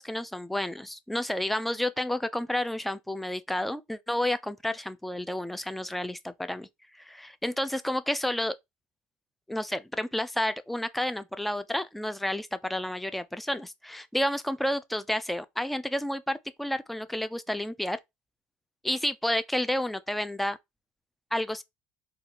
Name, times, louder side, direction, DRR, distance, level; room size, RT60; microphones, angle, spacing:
voice 1, 0.0-6.7 7.0-8.6 9.5-18.0 18.8-20.6 21.3-21.6, left 1 dB, 5° left, 0.3 m, -30 dB
4.0 x 2.3 x 2.9 m
cardioid pair, 135°, 4 cm